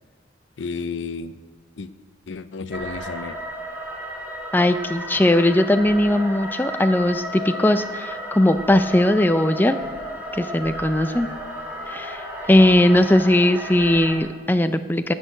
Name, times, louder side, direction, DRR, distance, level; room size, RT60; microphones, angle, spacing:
voice 1, 0.6-1.3 1.8-1.9 2.3-3.4, left 4 dB, 75° left, 13 dB, 0.5 m, -31 dB
sound 1, 2.7-14.1, equal, 10° right, 2.5 m, -33 dB
voice 2, 4.5-9.8 10.3-11.3 11.9-15.1, left 1 dB, 10° left, 9 dB, 0.4 m, -19 dB
18.0 x 6.4 x 6.5 m, 1.5 s
head